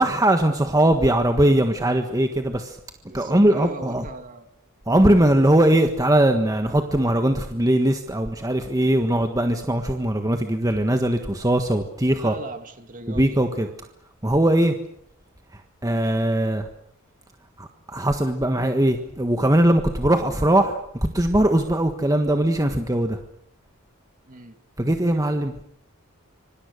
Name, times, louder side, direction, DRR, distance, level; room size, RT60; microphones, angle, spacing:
voice 1, 0.0-2.8 3.1-4.1 4.9-12.3 13.1-13.7 14.2-14.7 15.5-16.7 17.6-23.2 24.8-25.6, right 1 dB, 15° right, 5 dB, 1.5 m, -20 dB
voice 2, 3.1-4.4 12.2-13.7 24.2-24.6, right 2 dB, 40° right, 7 dB, 2.5 m, -38 dB
26.0 x 24.5 x 6.6 m, 0.69 s
head